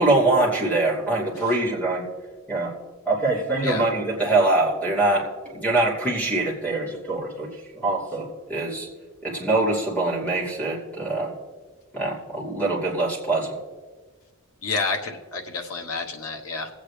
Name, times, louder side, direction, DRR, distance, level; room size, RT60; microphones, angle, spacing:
voice 1, 0.0-2.0 2.5-2.7 3.1-5.2 5.5-7.5 7.8-8.9 9.2-11.3 11.9-13.5, right 2 dB, 5° left, -4 dB, 2.6 m, -23 dB
voice 2, 14.6-16.7, left 4 dB, 80° left, 3 dB, 1.2 m, -29 dB
21.0 x 8.4 x 3.3 m, 1.4 s
head